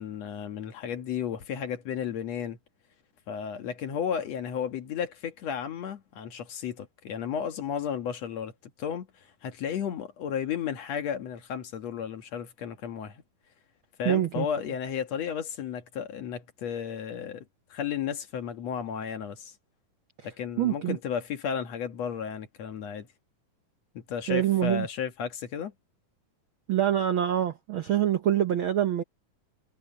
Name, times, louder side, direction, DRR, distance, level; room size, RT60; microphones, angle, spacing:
voice 1, 0.0-2.6 3.3-13.2 14.0-19.5 20.2-23.1 23.9-25.7, left 8 dB, 60° left, 2.4 m, -33 dB
voice 2, 14.0-14.5 20.6-21.0 24.3-24.9 26.7-29.0, right 11 dB, 75° right, 1.2 m, -25 dB
omnidirectional pair, 3.7 m